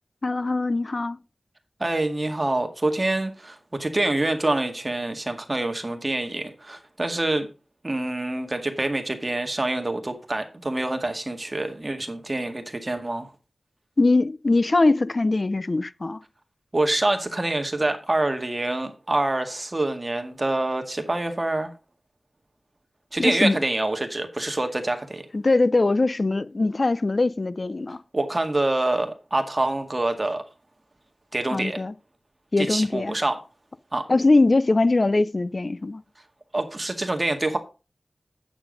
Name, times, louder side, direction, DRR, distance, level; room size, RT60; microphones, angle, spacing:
voice 1, 0.2-1.2 14.0-16.2 23.2-23.6 25.3-28.0 31.5-31.9 32.5-33.2 34.1-36.0, left 2 dB, 45° left, 0.5 m, -21 dB
voice 2, 1.8-7.5 7.8-13.3 16.7-21.7 23.1-25.2 28.1-30.4 31.3-31.8 32.6-33.4 33.9-34.0 36.5-37.6, right 2 dB, 30° right, 1.9 m, -26 dB
8.9 x 7.3 x 5.1 m
wide cardioid pair, 85°, 0 cm